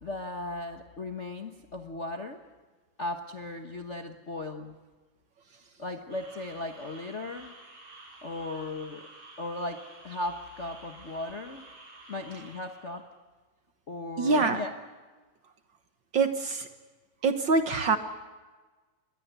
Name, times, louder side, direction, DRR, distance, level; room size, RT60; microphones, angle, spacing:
voice 1, 0.0-2.4 3.0-4.8 5.8-7.5 8.2-9.1 9.4-11.6 12.1-13.0 13.9-14.8, left 2 dB, 70° left, 3 dB, 0.6 m, -37 dB
sound 1, 6.1-13.0, right 2 dB, 85° right, 7.5 m, -51 dB
voice 2, 14.2-14.6 16.1-16.7 17.2-18.0, right 4 dB, 55° right, 8 dB, 1.4 m, -24 dB
27.5 x 21.5 x 8.2 m, 1.3 s
omnidirectional pair, 3.4 m